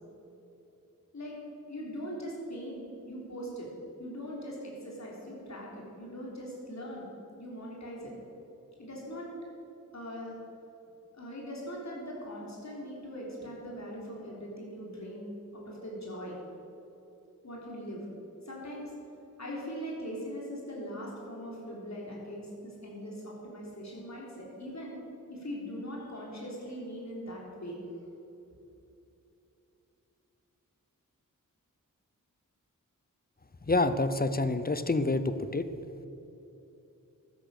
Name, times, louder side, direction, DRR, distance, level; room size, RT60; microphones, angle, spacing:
voice 1, 1.7-3.7 4.0-7.1 7.4-8.1 8.8-9.3 9.9-10.3 11.1-16.4 17.4-18.1 18.4-18.9 19.4-25.0 25.3-27.8, equal, 55° left, -4 dB, 3.6 m, -41 dB
voice 2, 33.7-35.7, left 2 dB, 30° left, 11 dB, 0.7 m, -27 dB
12.5 x 10.5 x 6.6 m, 3.0 s
wide cardioid pair, 60°, 33 cm